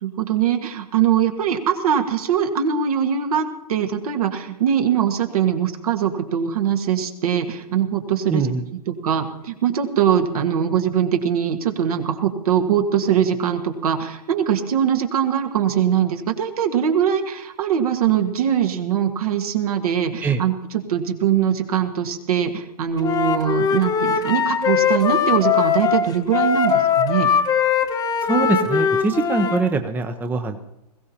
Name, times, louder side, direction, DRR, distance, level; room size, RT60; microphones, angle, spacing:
voice 1, 0.0-8.5 8.9-20.5 20.9-27.3, right 9 dB, 65° right, 5 dB, 1.7 m, -22 dB
voice 2, 8.3-8.6 20.2-20.4 28.3-30.6, right 4 dB, 10° right, 7 dB, 0.7 m, -22 dB
Wind instrument woodwind instrument, 23.0-29.6, left 7 dB, 20° left, 1.0 m, -20 dB
21.0 x 15.5 x 2.9 m, 0.87 s
hypercardioid pair, 120°, 20 cm